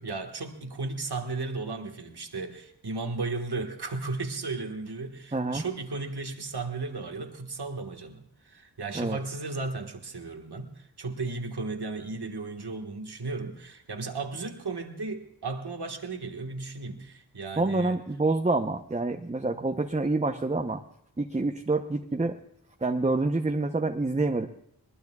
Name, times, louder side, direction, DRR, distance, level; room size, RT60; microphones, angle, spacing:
voice 1, 0.0-18.0, right 3 dB, 70° right, 5 dB, 1.6 m, -35 dB
voice 2, 5.3-5.6 8.9-9.2 17.6-20.8 21.2-22.4 22.8-24.5, right 2 dB, 15° right, 5 dB, 0.8 m, -27 dB
21.0 x 20.0 x 2.3 m, 0.73 s
cardioid pair, 45°, 41 cm